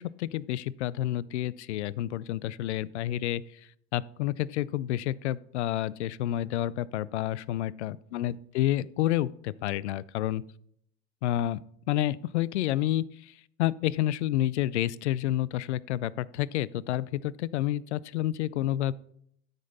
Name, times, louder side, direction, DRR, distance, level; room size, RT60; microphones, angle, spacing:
voice 1, 0.0-3.6 3.9-10.4 11.2-11.6 11.9-18.9, left 13 dB, 70° left, 22 dB, 0.5 m, -29 dB
12.5 x 5.3 x 4.0 m, 0.69 s
hypercardioid pair, 85°, 35 cm